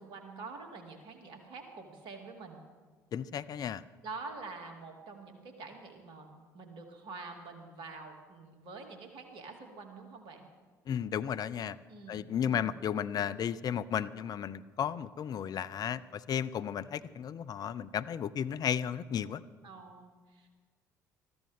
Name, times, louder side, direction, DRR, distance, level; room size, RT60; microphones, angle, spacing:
voice 1, 0.0-2.6 4.0-10.5 11.9-12.7 19.6-20.5, right 4 dB, 55° right, 4 dB, 2.5 m, -46 dB
voice 2, 3.1-3.8 10.9-11.8 12.1-19.4, left 8 dB, 40° left, 14 dB, 0.5 m, -34 dB
21.0 x 13.5 x 3.6 m, 1.5 s
figure-of-eight pair, 55°, 10 cm